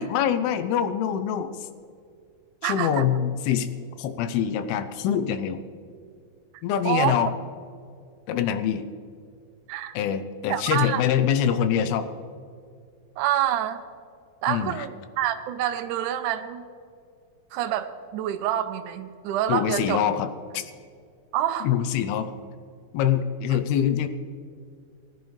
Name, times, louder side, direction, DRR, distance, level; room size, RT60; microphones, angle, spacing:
voice 1, 0.0-1.7 2.6-3.7 4.0-5.6 6.6-7.3 8.3-8.9 9.9-12.1 14.5-14.9 19.5-20.3 20.5-20.7 21.6-22.4 22.9-24.1, left 9 dB, 90° left, 10 dB, 2.7 m, -24 dB
voice 2, 2.6-3.0 6.9-7.2 9.7-9.9 10.5-11.0 13.2-13.8 14.4-16.6 17.5-20.1 21.3-21.7, right 11 dB, 75° right, 7 dB, 2.0 m, -27 dB
20.0 x 10.5 x 3.3 m, 2.3 s
omnidirectional pair, 4.3 m